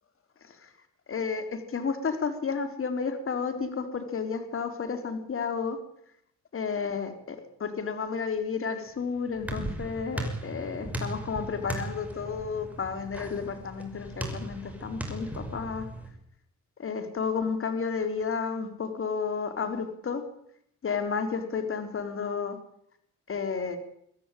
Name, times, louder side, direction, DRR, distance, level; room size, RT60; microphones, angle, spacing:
voice 1, 1.1-5.8 6.5-15.9 16.8-20.2 20.8-22.6 23.3-23.8, left 5 dB, 45° left, 7 dB, 3.9 m, -32 dB
sound 1, 8.9-16.1, right 1 dB, 5° right, 5.9 m, -37 dB
23.5 x 14.0 x 9.2 m, 0.71 s
cardioid pair, 90°, 30 cm